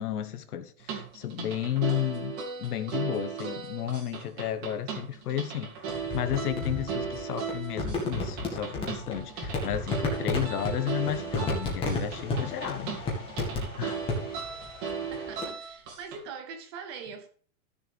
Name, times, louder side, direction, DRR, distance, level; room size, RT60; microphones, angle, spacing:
voice 1, 0.0-5.7 6.1-13.1 13.8-14.0, left 11 dB, 80° left, 1.4 m, -32 dB
sound 1, 0.8-16.2, right 6 dB, 35° right, 2.9 m, -37 dB
sound 2, 5.9-15.5, left 2 dB, 10° left, 2.0 m, -33 dB
voice 2, 15.1-17.3, right 6 dB, 20° right, 0.5 m, -42 dB
13.5 x 6.9 x 3.5 m
supercardioid pair, 165°, 45 cm